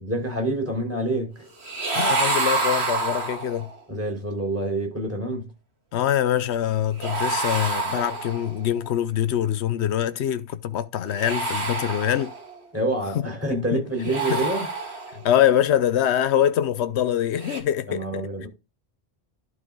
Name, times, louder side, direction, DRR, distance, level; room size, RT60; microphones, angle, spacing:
voice 1, 0.0-1.5 3.9-5.5 12.7-14.7 17.9-18.5, right 1 dB, 15° right, 4.8 m, -27 dB
sound 1, 1.6-3.8 7.0-8.6 11.0-12.6 13.9-15.3 17.3-17.6, right 3 dB, 75° right, 2.3 m, -27 dB
voice 2, 1.9-3.7 5.9-12.3 13.7-13.8 14.3-14.4 15.2-18.5, left 10 dB, 80° left, 1.0 m, -24 dB
12.0 x 4.7 x 3.7 m
omnidirectional pair, 1.1 m